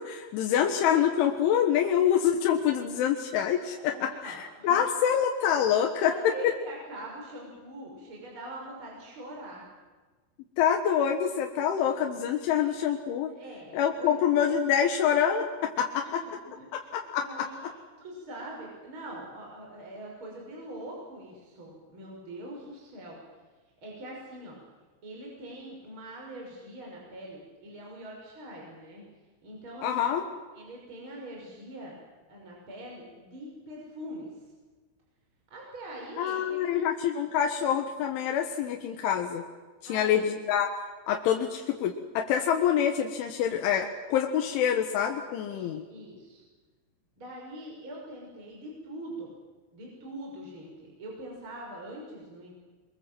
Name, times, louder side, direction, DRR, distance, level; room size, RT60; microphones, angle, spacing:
voice 1, 0.0-6.1 10.6-13.3 13.7-16.2 16.7-17.5 29.8-30.3 36.2-39.4 39.9-40.7 41.1-45.8, left 9 dB, 75° left, 2 dB, 3.8 m, -26 dB
voice 2, 3.9-4.8 5.8-9.6 13.4-14.2 16.0-16.1 16.8-17.7 18.0-23.2 23.8-24.6 25.0-29.0 29.4-30.1 30.5-32.0 32.3-34.3 35.5-37.2 39.8-40.2 45.5-46.4 47.2-49.3 49.7-52.5, right 1 dB, 25° right, -2 dB, 6.4 m, -43 dB
27.5 x 24.0 x 7.8 m, 1.3 s
omnidirectional pair, 5.6 m